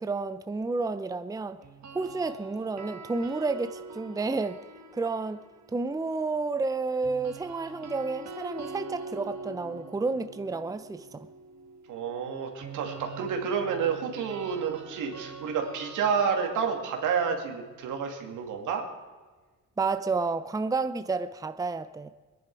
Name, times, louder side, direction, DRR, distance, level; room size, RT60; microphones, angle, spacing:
voice 1, 0.0-1.6 1.9-4.6 4.9-5.4 5.7-11.3 19.8-22.1, right 3 dB, 10° right, 0.6 m, -30 dB
sound 1, 1.6-5.8 7.0-18.9, right 4 dB, 65° right, 1.8 m, -45 dB
voice 2, 11.9-18.8, right 6 dB, 85° right, 2.5 m, -29 dB
22.0 x 10.5 x 4.8 m
cardioid pair, 90°, 30 cm